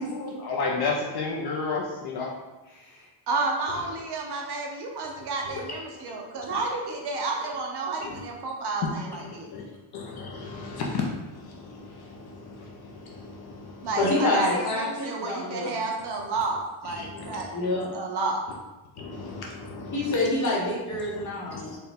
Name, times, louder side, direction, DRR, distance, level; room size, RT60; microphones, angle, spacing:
voice 1, 0.0-2.3 5.5-6.1 8.0-8.2 8.8-9.2 9.5-9.6 9.9-11.0 11.3-14.1 16.8-17.4 17.7-17.8 19.0-20.2 21.5-21.8, left 4 dB, 50° left, -1 dB, 0.5 m, -33 dB
voice 2, 3.3-9.5 13.8-17.5 17.7-18.4, right 3 dB, 55° right, 0 dB, 0.6 m, -31 dB
voice 3, 13.9-15.8 17.5-17.9 19.9-21.7, left 2 dB, 35° left, -5 dB, 1.0 m, -27 dB
4.2 x 2.2 x 3.4 m, 1.1 s
cardioid pair, 175°, 49 cm